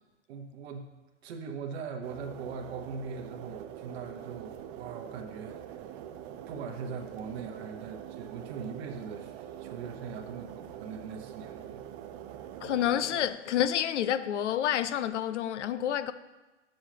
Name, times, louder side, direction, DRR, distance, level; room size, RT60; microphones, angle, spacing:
voice 1, 0.3-0.9 1.2-5.9 6.5-11.8 12.2-12.4, right 5 dB, 60° right, 1.0 m, -41 dB
sound 1, 2.0-13.3, right 10 dB, 30° right, 0.4 m, -44 dB
voice 2, 12.6-16.1, left 10 dB, 75° left, 0.6 m, -29 dB
10.0 x 6.4 x 2.9 m
hypercardioid pair, 120°, 36 cm